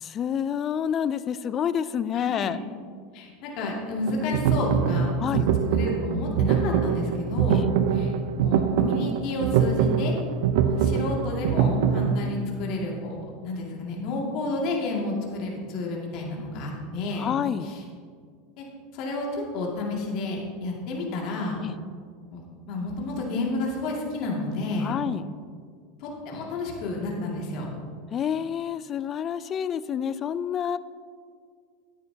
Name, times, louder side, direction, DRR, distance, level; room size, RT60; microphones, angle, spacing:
voice 1, 0.0-2.6 5.2-5.5 7.5-7.7 17.2-17.7 21.6-21.7 24.8-25.2 28.1-30.8, left 8 dB, 35° left, 15 dB, 0.4 m, -28 dB
voice 2, 2.1-2.6 3.1-5.3 5.7-7.7 7.9-8.1 8.4-10.2 10.6-17.3 17.6-17.8 18.6-18.7 18.9-21.6 22.3-22.4 22.7-25.0 26.0-27.7, left 2 dB, 55° left, -2 dB, 2.2 m, -31 dB
sound 1, 4.1-12.2, right 7 dB, 70° right, 0.6 m, -24 dB
12.5 x 9.5 x 2.8 m, 2.1 s
hypercardioid pair, 100°, 0 cm